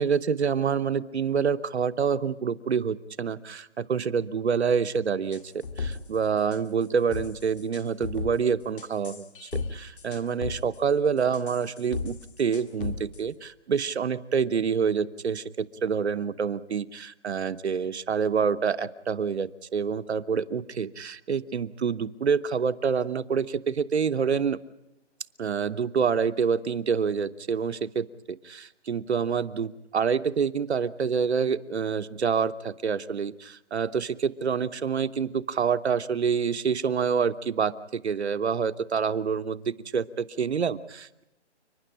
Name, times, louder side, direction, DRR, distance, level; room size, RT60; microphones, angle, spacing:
voice 1, 0.0-24.6 25.4-41.2, right 6 dB, 65° right, 13 dB, 0.9 m, -27 dB
sound 1, 5.3-6.2 6.5-6.8 7.1-8.3 8.8-9.7 10.0-10.8 11.2-13.2, left 4 dB, 50° left, 2.0 m, -35 dB
30.0 x 10.0 x 9.9 m, 0.88 s
hypercardioid pair, 170°, 35 cm